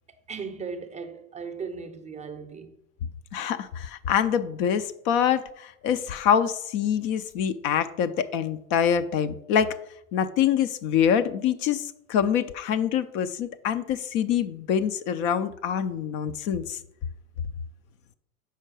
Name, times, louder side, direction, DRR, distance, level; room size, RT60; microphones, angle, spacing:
voice 1, 0.3-2.7, right 5 dB, 15° right, 0.6 m, -37 dB
voice 2, 3.3-9.7 10.1-16.8, left 8 dB, 45° left, 0.5 m, -25 dB
5.7 x 4.4 x 6.1 m
hypercardioid pair, 105°, 44 cm